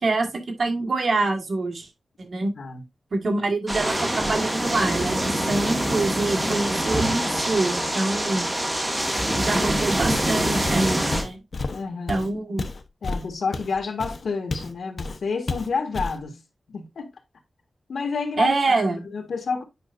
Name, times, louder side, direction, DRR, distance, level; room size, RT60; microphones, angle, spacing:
voice 1, 0.0-1.9 2.2-2.5 3.1-8.5 9.3-11.4 12.1-12.7 18.4-19.0, right 2 dB, 55° right, 1.8 m, -25 dB
sound 1, 3.7-11.2, right 1 dB, 10° right, 1.8 m, -25 dB
Walk footsteps, 10.1-10.4 10.6-14.7 15.0-15.2 15.5-16.2, left 3 dB, 50° left, 0.9 m, -31 dB
voice 2, 11.7-12.3 13.0-16.4 16.7-17.1 17.9-19.6, left 4 dB, 85° left, 1.7 m, -29 dB
8.9 x 5.6 x 2.6 m
wide cardioid pair, 135°, 0 cm